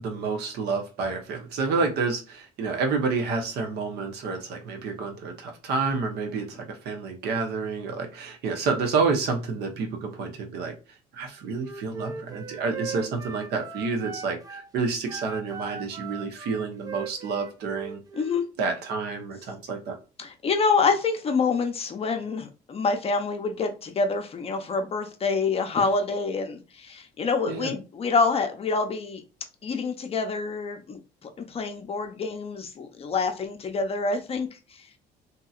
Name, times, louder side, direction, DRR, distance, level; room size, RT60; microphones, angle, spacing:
voice 1, 0.0-10.7 11.1-18.0 18.6-20.0 27.5-27.7, right 4 dB, 75° right, 4 dB, 0.9 m, -29 dB
Wind instrument woodwind instrument, 11.6-14.7 15.0-18.5, right 4 dB, 20° right, 0.4 m, -40 dB
voice 2, 18.1-18.5 20.2-29.2 29.6-34.9, left 4 dB, 35° left, 6 dB, 0.6 m, -27 dB
2.8 x 2.7 x 2.4 m, 0.33 s
cardioid pair, 110°, 17 cm